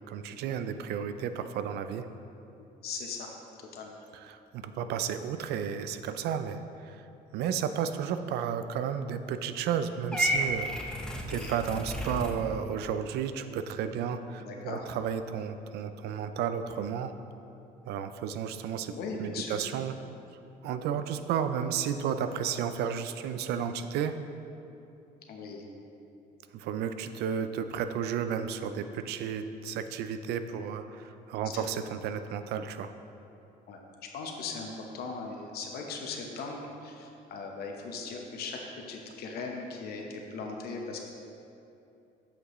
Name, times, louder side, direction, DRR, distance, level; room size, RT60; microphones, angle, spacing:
voice 1, 0.1-2.1 4.1-7.1 7.3-10.9 11.3-17.1 17.9-18.9 19.2-19.9 20.6-24.1 26.5-32.9, right 8 dB, 75° right, 10 dB, 0.4 m, -33 dB
voice 2, 2.8-3.3 3.7-4.0 11.2-11.5 14.4-14.8 18.9-19.6 25.3-25.6 31.4-31.6 33.7-33.8 34.1-38.6 38.9-41.0, left 4 dB, 65° left, 1 dB, 0.9 m, -39 dB
Purr / Meow, 10.1-12.3, equal, 5° left, 0.7 m, -31 dB
8.2 x 5.9 x 3.1 m, 2.7 s
cardioid pair, 110°, 17 cm